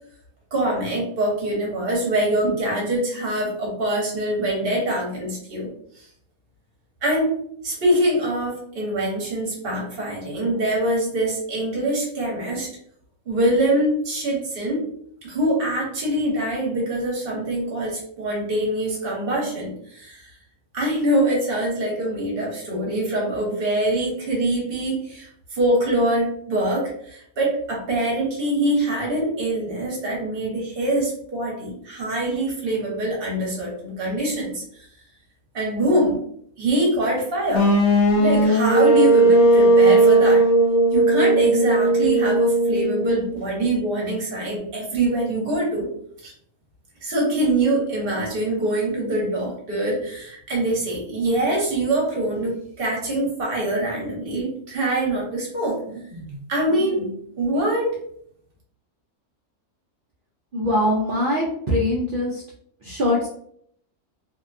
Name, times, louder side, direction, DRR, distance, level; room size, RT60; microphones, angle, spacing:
voice 1, 0.5-5.7 6.0-6.1 7.0-12.7 13.3-14.8 15.2-20.3 20.7-34.8 35.5-36.2 36.6-37.7 38.2-40.4 40.9-45.9 46.2-46.3 47.0-58.0, right 1 dB, 45° right, -2 dB, 1.0 m, -24 dB
sound 1, 37.5-43.4, right 2 dB, 65° left, 0.7 m, -17 dB
voice 2, 60.5-62.4 62.8-63.3, left 1 dB, 75° right, -4 dB, 0.4 m, -22 dB
2.7 x 2.1 x 2.4 m, 0.68 s
omnidirectional pair, 1.5 m